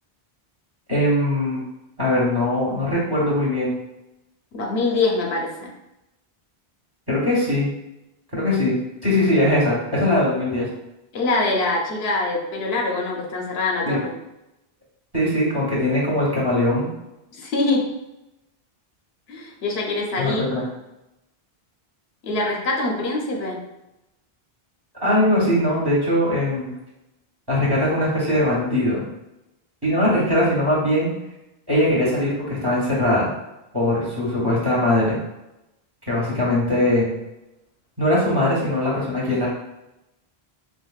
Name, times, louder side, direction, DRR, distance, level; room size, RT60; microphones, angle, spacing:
voice 1, 0.9-1.6 2.0-3.7 7.1-7.7 8.3-10.7 13.8-14.0 15.1-16.9 20.2-20.6 25.0-26.7 27.5-29.0 29.8-31.1 31.7-33.3 33.7-35.2 36.1-37.1 38.0-39.5, left 1 dB, 25° right, -6 dB, 1.1 m, -21 dB
voice 2, 4.5-5.7 11.1-14.1 17.3-17.9 19.3-20.5 22.2-23.7, left 2 dB, 80° left, 0 dB, 0.9 m, -24 dB
4.4 x 2.5 x 2.3 m, 0.91 s
omnidirectional pair, 1.0 m